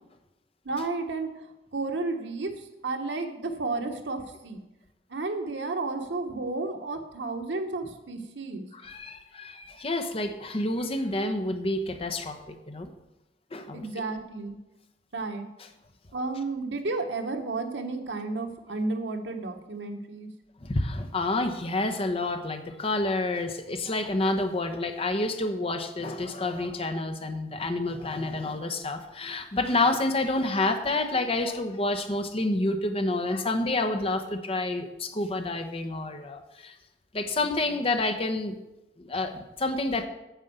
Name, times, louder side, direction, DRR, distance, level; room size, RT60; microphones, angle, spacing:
voice 1, 0.6-4.6 5.1-8.7 13.7-14.6 15.1-15.5 16.1-20.3, right 3 dB, 85° right, 5 dB, 1.3 m, -32 dB
voice 2, 8.7-12.9 13.5-14.0 20.6-36.7 37.1-38.5 39.0-40.1, left 2 dB, 35° left, 7 dB, 0.9 m, -29 dB
9.2 x 5.4 x 8.0 m, 0.97 s
head